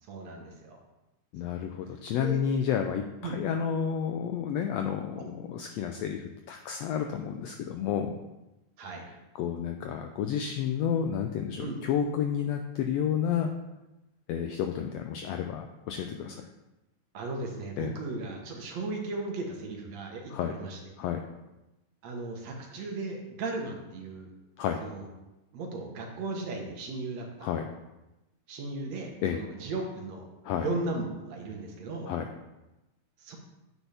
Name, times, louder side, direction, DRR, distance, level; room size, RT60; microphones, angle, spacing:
voice 1, 0.0-0.8 1.4-1.6 2.1-2.4 3.2-3.5 5.2-5.3 8.8-9.1 11.6-11.8 17.1-20.8 22.0-24.3 24.8-25.1 25.5-27.5 28.5-30.3 30.6-32.1 33.2-33.4, right 3 dB, 65° right, 1 dB, 2.3 m, -36 dB
voice 2, 1.3-8.2 9.4-13.5 14.3-16.5 17.8-18.0 20.3-20.6 21.0-21.2 24.6-24.8 27.4-27.7 29.2-29.4 30.4-30.7 32.1-32.3, left 8 dB, 85° left, 5 dB, 1.5 m, -31 dB
8.9 x 8.5 x 3.5 m, 1.0 s
omnidirectional pair, 3.5 m